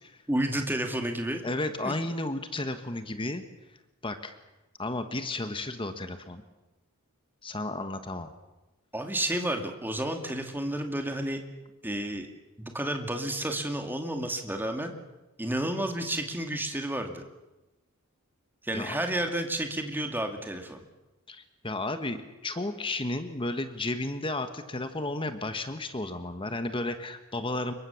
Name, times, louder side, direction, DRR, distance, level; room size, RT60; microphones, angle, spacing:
voice 1, 0.3-1.4 1.8-1.9 8.9-11.4 11.8-12.3 12.6-14.9 15.4-17.2 18.6-20.8, right 1 dB, 10° right, 4 dB, 2.3 m, -31 dB
voice 2, 1.4-3.4 4.0-4.3 4.8-6.4 7.4-8.3 18.7-18.9 21.3-27.7, left 2 dB, 25° left, 9 dB, 1.3 m, -33 dB
26.0 x 22.5 x 7.1 m, 1.0 s
head